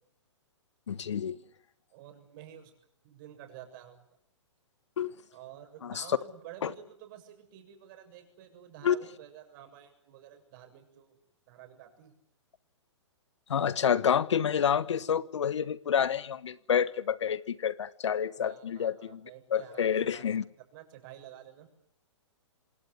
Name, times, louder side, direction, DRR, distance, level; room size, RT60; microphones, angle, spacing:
voice 1, 0.9-1.4 5.0-5.1 5.8-6.0 6.6-6.7 8.8-9.0 13.5-20.4, left 8 dB, 70° left, 1.2 m, -28 dB
voice 2, 1.9-2.7 3.0-4.0 5.3-11.2 11.5-12.1 18.4-20.2 20.6-21.7, right 11 dB, 45° right, 7.1 m, -50 dB
27.5 x 20.5 x 9.5 m
hypercardioid pair, 125°, 16 cm